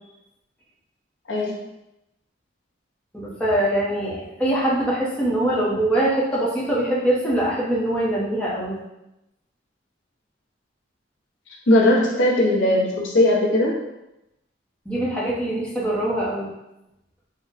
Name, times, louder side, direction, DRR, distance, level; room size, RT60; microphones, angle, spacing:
voice 1, 3.1-8.8 14.9-16.5, right 1 dB, 5° left, -7 dB, 0.8 m, -23 dB
voice 2, 11.7-13.8, left 1 dB, 85° left, -2 dB, 0.7 m, -18 dB
3.6 x 2.1 x 4.0 m, 0.90 s
head